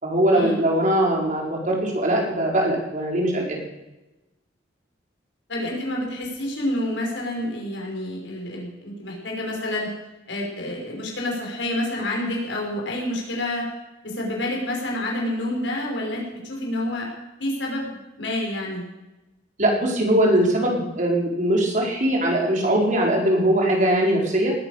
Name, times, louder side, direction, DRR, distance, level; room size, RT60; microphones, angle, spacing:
voice 1, 0.0-3.6 19.6-24.5, right 1 dB, 45° right, -1 dB, 4.8 m, -21 dB
voice 2, 5.5-9.9 10.3-13.7 14.0-17.1 17.4-18.8, left 1 dB, 70° left, -1 dB, 5.6 m, -28 dB
19.5 x 10.0 x 6.7 m, 1.0 s
head